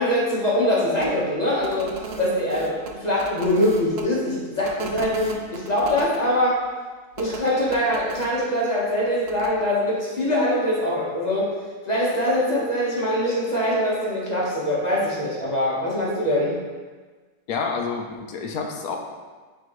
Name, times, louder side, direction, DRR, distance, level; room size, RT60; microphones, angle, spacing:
voice 1, 0.0-6.6 7.2-11.6 11.8-16.6, left 1 dB, 30° left, -6 dB, 1.1 m, -23 dB
sound 1, 1.0-1.1 1.6-4.0 4.6-6.2 7.1-8.3 9.3-9.5, right 5 dB, 70° right, 0.5 m, -35 dB
voice 2, 17.5-19.0, left 5 dB, 70° left, 2 dB, 1.1 m, -28 dB
8.9 x 3.5 x 3.0 m, 1.4 s
omnidirectional pair, 1.7 m